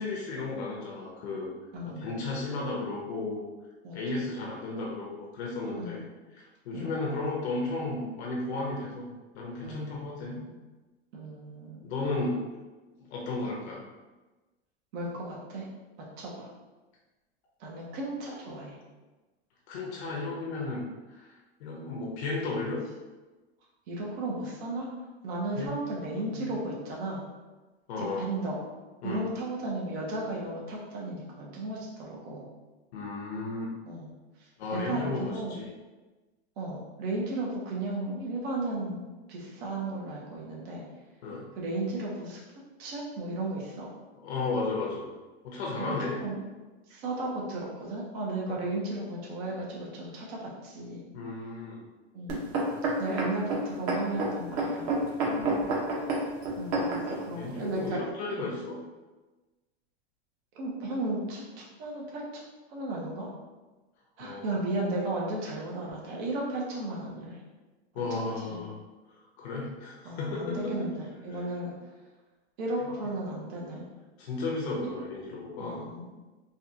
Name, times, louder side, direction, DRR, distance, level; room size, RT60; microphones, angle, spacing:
voice 1, 0.0-1.5 1.8-3.4 3.9-6.0 6.3-9.1 9.3-10.4 11.8-12.4 13.0-13.8 19.7-22.8 25.5-25.7 26.2-26.5 27.9-28.2 29.0-29.3 32.9-33.7 34.6-35.7 41.2-41.5 44.2-45.1 45.4-46.2 48.5-48.6 51.1-51.8 55.3-55.7 57.3-58.8 64.2-64.4 67.9-68.7 69.4-70.9 74.2-75.9, left 3 dB, 80° left, -2 dB, 1.0 m, -34 dB
voice 2, 1.7-2.1 3.8-4.3 5.7-6.1 6.7-7.0 9.6-10.6 11.1-11.9 14.9-15.7 16.0-16.5 17.6-18.8 23.9-24.9 25.2-27.2 28.0-28.6 29.0-32.4 33.9-34.1 34.4-35.6 36.6-39.0 39.3-40.8 41.6-42.4 42.8-43.9 45.8-45.9 46.2-46.4 46.9-51.0 52.1-52.4 53.0-55.0 56.6-58.0 58.4-58.5 60.5-62.4 62.7-63.3 64.2-67.4 68.1-68.6 70.0-71.7 72.6-73.8 75.6-76.0, right 2 dB, 65° right, -3 dB, 1.3 m, -35 dB
sound 1, 52.3-57.2 57.9-58.0, right 2 dB, 50° right, 1.2 m, -29 dB
4.0 x 2.5 x 2.9 m, 1.2 s
supercardioid pair, 125°, 32 cm